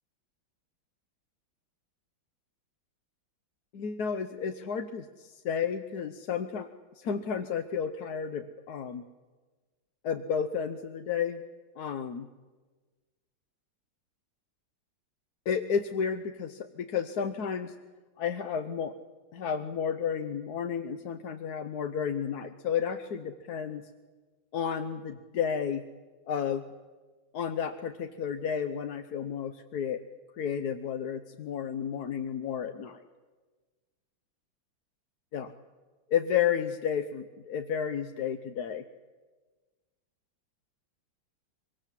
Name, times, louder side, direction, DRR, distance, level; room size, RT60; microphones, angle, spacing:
voice 1, 3.7-6.7 7.0-9.0 10.0-11.4 11.8-12.3 15.5-17.7 18.2-18.9 19.3-23.8 24.5-25.8 26.3-26.6 27.3-30.0 30.4-33.0 35.3-35.5 36.1-38.8, left 7 dB, 60° left, 8 dB, 1.3 m, -32 dB
24.5 x 24.0 x 7.5 m, 1.3 s
omnidirectional pair, 2.2 m